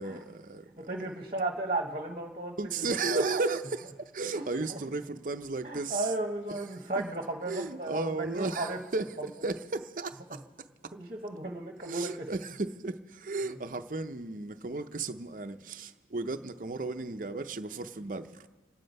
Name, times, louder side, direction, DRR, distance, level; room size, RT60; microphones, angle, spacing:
voice 1, 0.0-0.9 2.6-6.1 7.0-7.1 7.5-10.4 11.8-18.5, right 3 dB, 45° right, 0.6 m, -34 dB
voice 2, 0.9-3.4 4.3-4.8 5.6-8.8 10.3-10.4 10.9-12.3 13.4-13.6, right 2 dB, 30° right, 1.2 m, -35 dB
27.0 x 9.7 x 5.4 m
head